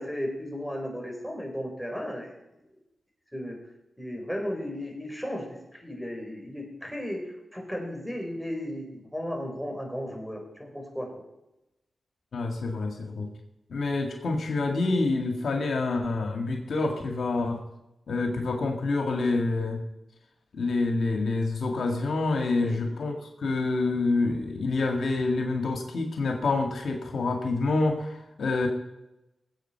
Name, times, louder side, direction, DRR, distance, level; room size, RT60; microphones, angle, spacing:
voice 1, 0.0-2.3 3.3-3.6 4.0-7.2 7.5-11.2 22.5-22.8, equal, ahead, 1 dB, 4.7 m, -35 dB
voice 2, 12.3-13.3 13.7-17.6 18.1-19.8 20.5-28.7, left 3 dB, 75° left, 3 dB, 1.8 m, -27 dB
19.5 x 8.2 x 4.5 m, 0.92 s
cardioid pair, 50°, 0 cm